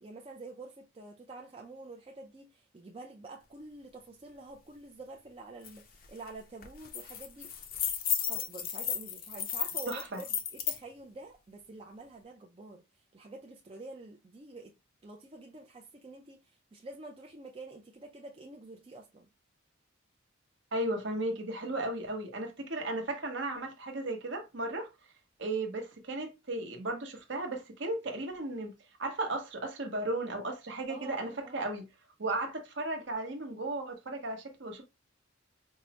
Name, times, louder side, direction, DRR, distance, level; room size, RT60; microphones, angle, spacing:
voice 1, 0.0-7.5 8.2-14.7 15.0-19.3 30.9-31.7, right 2 dB, 25° right, 0.4 m, -48 dB
sound 1, 5.6-5.7 6.1-6.3 6.6-10.8, left 8 dB, 45° left, 0.5 m, -34 dB
voice 2, 9.9-10.2 20.7-24.9 25.4-28.7 29.0-31.9 32.2-34.8, right 2 dB, 60° right, 0.9 m, -35 dB
4.6 x 2.0 x 2.8 m
head